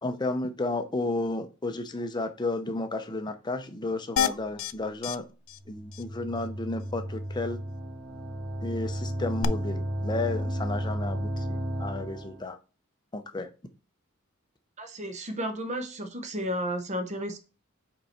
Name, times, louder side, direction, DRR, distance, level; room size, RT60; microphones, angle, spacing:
voice 1, 0.0-5.2 5.7-7.6 8.6-12.6 13.1-13.5, left 2 dB, 20° left, 0.7 m, -32 dB
sound 1, 4.2-4.7 5.0-5.2 5.5-5.6 5.9-6.0 9.4-9.5, left 8 dB, 65° left, 0.4 m, -27 dB
sound 2, 5.6-12.4, equal, 90° right, 2.8 m, -33 dB
voice 2, 14.8-17.4, equal, 35° right, 0.9 m, -33 dB
5.4 x 4.6 x 4.3 m
head